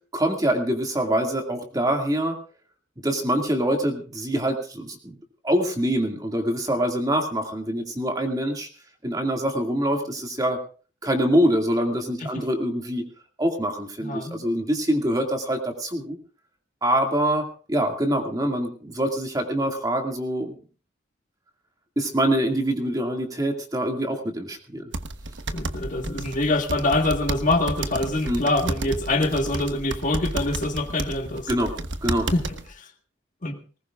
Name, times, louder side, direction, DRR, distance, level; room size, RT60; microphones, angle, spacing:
voice 1, 0.1-2.4 3.0-5.1 5.4-8.7 9.0-10.6 11.0-13.0 13.4-16.2 16.8-20.6 22.0-24.9 28.2-28.4 31.5-31.7 32.0-32.3, right 1 dB, 20° right, 2 dB, 2.3 m, -25 dB
voice 2, 14.0-14.4 25.5-31.5 32.3-32.4 32.8-32.9 33.4-33.6, left 2 dB, 45° left, 3 dB, 1.7 m, -25 dB
sound 1, 24.9-32.7, right 2 dB, 75° right, 1.2 m, -32 dB
19.5 x 19.5 x 2.5 m, 0.38 s
head